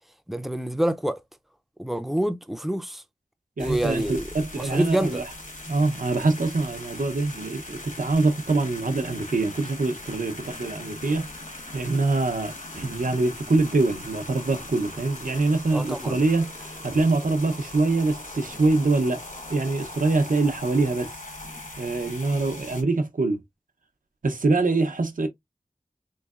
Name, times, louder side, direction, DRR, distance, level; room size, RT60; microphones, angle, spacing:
voice 1, 0.3-1.2 1.8-3.0 3.6-5.2 15.7-16.2, right 1 dB, ahead, 0.4 m, -27 dB
sound 1, 3.6-22.8, left 2 dB, 65° left, 1.2 m, -40 dB
voice 2, 3.6-5.2 5.7-11.3 11.7-19.2 19.5-21.1 21.8-23.4 24.2-25.3, right 3 dB, 70° right, 0.6 m, -24 dB
3.5 x 3.1 x 2.3 m
wide cardioid pair, 45°, 14 cm